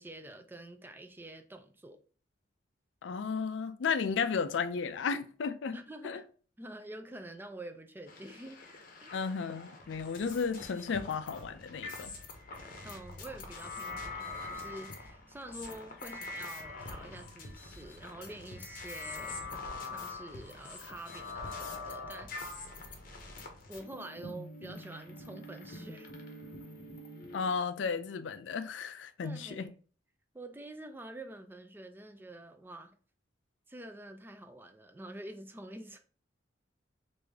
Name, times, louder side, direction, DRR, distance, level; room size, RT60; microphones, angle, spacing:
voice 1, 0.0-2.0 5.7-6.2 6.6-8.6 9.0-9.1 12.8-22.5 23.7-26.1 29.2-29.7 30.3-33.0 33.7-36.0, right 1 dB, 10° right, 0.4 m, -47 dB
voice 2, 3.0-5.8 6.0-6.2 9.1-12.1 27.3-29.7, left 5 dB, 85° left, 0.4 m, -34 dB
sound 1, 8.1-27.5, left 3 dB, 50° left, 0.7 m, -44 dB
3.3 x 2.6 x 3.4 m
head